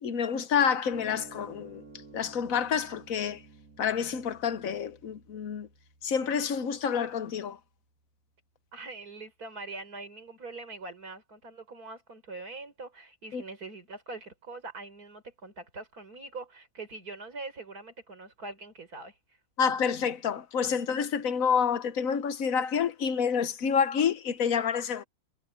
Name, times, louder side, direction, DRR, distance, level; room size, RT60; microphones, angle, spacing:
voice 1, 0.0-1.8 2.1-3.4 3.8-5.7 6.0-7.6 13.3-13.4 19.6-25.0, left 7 dB, 70° left, 1.3 m, -28 dB
sound 1, 0.9-7.6, right 3 dB, 70° right, 3.9 m, -53 dB
voice 2, 8.7-19.2, right 3 dB, 85° right, 4.7 m, -43 dB
omnidirectional pair, 1.6 m